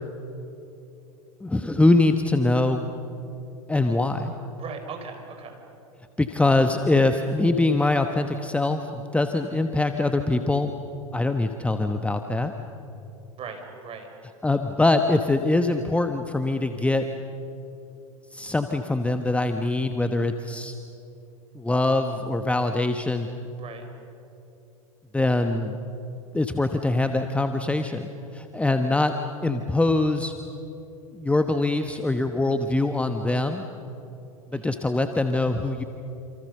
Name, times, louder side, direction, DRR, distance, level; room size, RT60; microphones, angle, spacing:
voice 1, 1.4-2.9 3.7-4.3 6.2-10.7 11.1-12.5 14.4-17.0 18.3-20.7 21.5-23.3 25.1-25.8 26.3-29.1 29.4-30.3 31.1-33.6 34.5-35.8, left 2 dB, 5° left, 7 dB, 1.2 m, -23 dB
voice 2, 4.6-5.6 9.4-9.7 13.4-14.2 23.6-23.9 34.5-34.8, right 5 dB, 30° right, 5 dB, 5.4 m, -39 dB
28.5 x 28.0 x 6.7 m, 2.8 s
hypercardioid pair, 90°, 19 cm